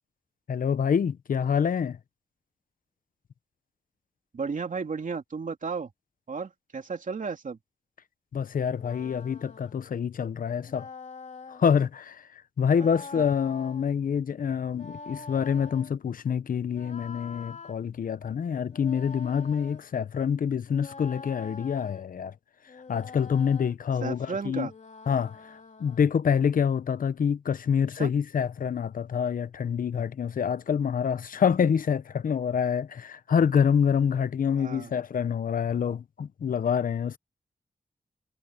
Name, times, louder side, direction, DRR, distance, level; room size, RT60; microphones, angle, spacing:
voice 1, 0.5-2.0 8.3-10.9 11.5-12.2 12.6-22.3 22.9-24.7 25.1-25.5 25.8-37.2, left 7 dB, 80° left, 0.8 m, -26 dB
voice 2, 4.3-5.9 6.3-7.6 13.1-13.3 24.0-24.7 28.0-28.1 34.6-34.9, right 5 dB, 65° right, 2.9 m, -33 dB
sound 1, 8.7-9.8 10.7-11.6 12.7-13.9 14.7-15.9 16.7-17.8 18.7-19.8 20.7-22.1 22.7-23.7 24.7-26.1, left 4 dB, 60° left, 3.1 m, -45 dB
cardioid pair, 50°, 14 cm